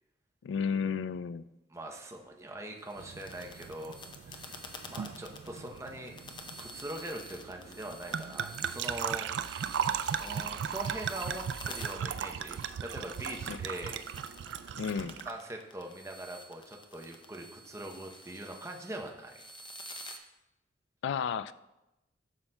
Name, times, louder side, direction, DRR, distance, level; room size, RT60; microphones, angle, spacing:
voice 1, 0.4-1.4 13.5-13.6 14.7-15.2 21.0-21.5, left 6 dB, 85° left, 15 dB, 0.3 m, -32 dB
voice 2, 1.7-4.0 4.3-6.1 6.6-9.8 10.2-14.0 15.3-19.4, right 1 dB, 15° right, 1 dB, 0.7 m, -42 dB
sound 1, 2.7-20.2, left 1 dB, 25° left, 0.6 m, -49 dB
sound 2, 3.0-15.3, right 8 dB, 75° right, 0.3 m, -37 dB
11.5 x 5.7 x 2.2 m, 0.94 s
head